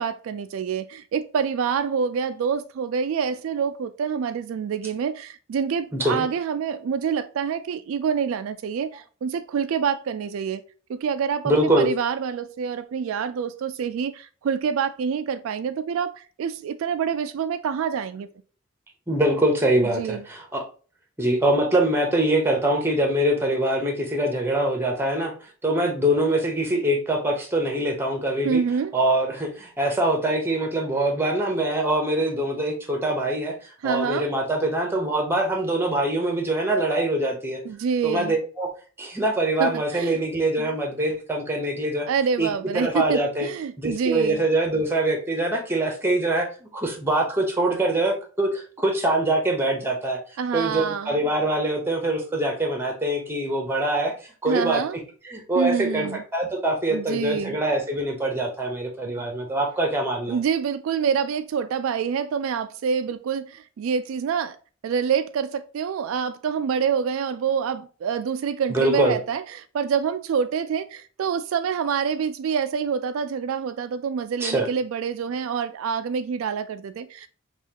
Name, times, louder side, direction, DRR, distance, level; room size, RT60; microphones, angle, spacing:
voice 1, 0.0-10.6 10.9-18.3 19.8-20.2 28.4-29.0 33.8-34.3 37.6-38.4 39.6-40.2 40.6-40.7 42.1-44.4 50.4-51.2 54.5-55.0 55.6-56.2 56.9-57.6 59.1-59.3 60.3-64.6 64.8-77.3, right 6 dB, 75° right, 0.3 m, -26 dB
voice 2, 5.9-6.3 11.4-11.9 19.1-20.6 21.2-25.3 25.6-28.6 28.9-37.6 38.0-38.7 39.0-42.1 42.4-43.5 43.8-50.2 50.5-54.1 54.4-54.8 55.2-60.4 68.7-69.2 74.4-74.7, right 1 dB, 10° right, 0.9 m, -24 dB
5.6 x 2.4 x 2.8 m
head